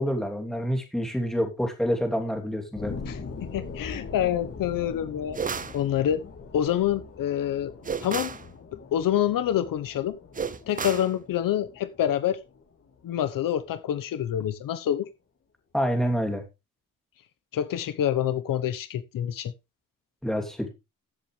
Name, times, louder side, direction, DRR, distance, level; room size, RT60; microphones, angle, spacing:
voice 1, 0.0-2.9 15.7-16.4 20.2-20.7, equal, ahead, 2.9 m, -27 dB
sound 1, 2.8-13.8 14.2-14.3, left 4 dB, 40° left, 3.3 m, -42 dB
voice 2, 3.1-5.4 5.7-6.2 6.5-7.7 8.0-8.3 8.9-10.2 10.7-12.4 13.0-15.1 17.5-19.5, left 10 dB, 65° left, 1.0 m, -27 dB
sound 2, 5.3-5.8 7.8-8.5 10.3-11.1, right 6 dB, 25° right, 0.7 m, -32 dB
14.5 x 7.7 x 3.3 m
cardioid pair, 120°, 36 cm